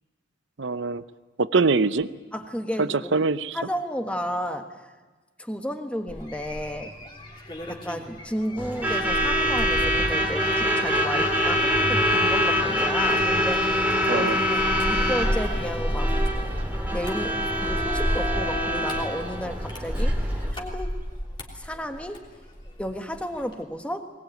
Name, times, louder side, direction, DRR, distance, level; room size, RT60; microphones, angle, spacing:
voice 1, 0.6-1.0 1.4-2.1 2.8-3.6 14.1-14.4, right 4 dB, 75° right, 14 dB, 0.8 m, -23 dB
voice 2, 2.3-3.3 3.5-4.9 5.4-6.9 7.7-16.1 16.9-21.0 21.5-22.2 22.8-24.1, equal, 5° left, 6 dB, 1.4 m, -32 dB
sound 1, 6.1-22.8 23.1-23.6, equal, 25° left, 3.2 m, -32 dB
Truck / Alarm, 8.6-20.5, equal, 10° right, 2.5 m, -25 dB
21.0 x 20.5 x 9.3 m, 1.3 s
head